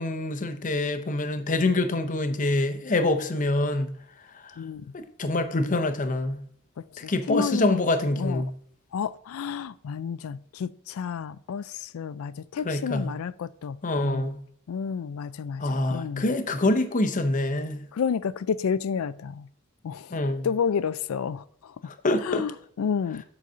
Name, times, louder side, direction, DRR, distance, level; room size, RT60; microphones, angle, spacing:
voice 1, 0.0-3.9 4.3-4.6 4.9-6.4 7.0-8.5 12.6-13.1 13.8-14.4 15.6-17.8 20.1-20.5 21.9-22.4, left 2 dB, 40° left, 0.7 m, -25 dB
voice 2, 4.6-4.9 6.8-7.9 8.1-8.4 8.9-14.3 14.7-16.3 17.9-19.5 19.8-21.9 22.2-23.2, left 6 dB, 85° left, 0.4 m, -31 dB
7.7 x 4.0 x 5.5 m
head